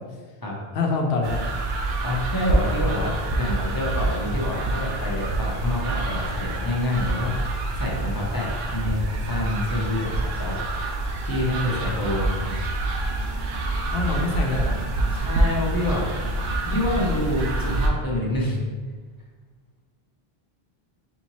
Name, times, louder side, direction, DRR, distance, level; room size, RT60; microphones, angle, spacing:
voice 1, 0.7-1.4 13.9-14.9, left 3 dB, 85° left, 2 dB, 0.9 m, -25 dB
sound 1, 1.2-17.9, right 2 dB, 75° right, 0.8 m, -26 dB
voice 2, 2.0-7.3 7.8-10.8 11.2-12.7 15.1-16.0 16.6-18.6, left 1 dB, 25° left, -4 dB, 0.6 m, -27 dB
4.5 x 2.8 x 2.9 m, 1.4 s
omnidirectional pair, 1.0 m